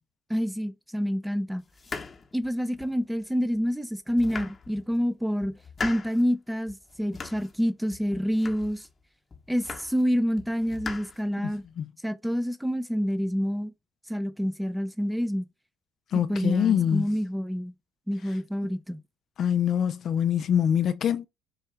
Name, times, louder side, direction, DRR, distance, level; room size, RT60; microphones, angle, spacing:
voice 1, 0.3-1.6 2.3-5.5 5.8-8.9 9.5-11.6 12.0-13.7 14.1-15.5 16.1-17.7 18.1-19.0, equal, 5° right, 0.6 m, -27 dB
sound 1, 1.7-3.0 3.6-3.7 4.1-5.0 5.4-6.2 6.7-7.6 7.9-8.9 9.3-10.1 10.4-11.7, left 4 dB, 35° left, 0.9 m, -40 dB
voice 2, 16.1-17.1 19.4-21.3, left 9 dB, 55° left, 0.4 m, -24 dB
4.6 x 2.7 x 3.3 m
supercardioid pair, 75°, 0 cm